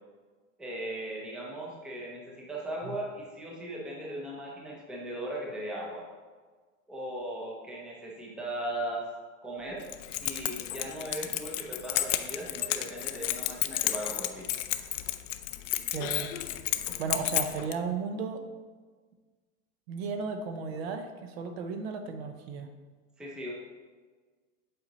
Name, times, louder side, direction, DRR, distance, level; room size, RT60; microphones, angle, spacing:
voice 1, 0.6-6.0 6.9-9.1 9.4-9.9 10.2-14.5 23.2-23.5, right 1 dB, ahead, -3 dB, 0.6 m, -38 dB
Keys jangling, 9.8-17.7, left 14 dB, 65° left, 0.5 m, -32 dB
voice 2, 15.9-16.3 17.0-18.4 19.9-22.7, right 5 dB, 50° right, 7 dB, 0.7 m, -34 dB
7.8 x 4.3 x 3.9 m, 1.4 s
supercardioid pair, 160°, 40 cm